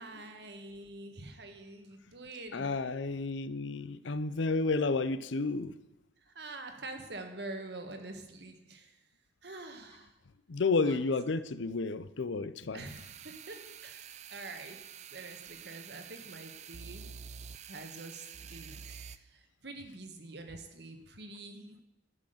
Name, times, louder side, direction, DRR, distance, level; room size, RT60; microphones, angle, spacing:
voice 1, 0.0-2.8 6.2-9.0 9.4-10.1 10.8-11.0 12.7-17.2 17.7-21.8, right 2 dB, 55° right, 6 dB, 1.5 m, -46 dB
voice 2, 2.5-5.8 10.5-12.8, left 3 dB, 70° left, 15 dB, 0.6 m, -31 dB
sound 1, 12.8-19.2, right 7 dB, 35° right, 0.4 m, -48 dB
12.0 x 6.2 x 7.8 m, 0.92 s
head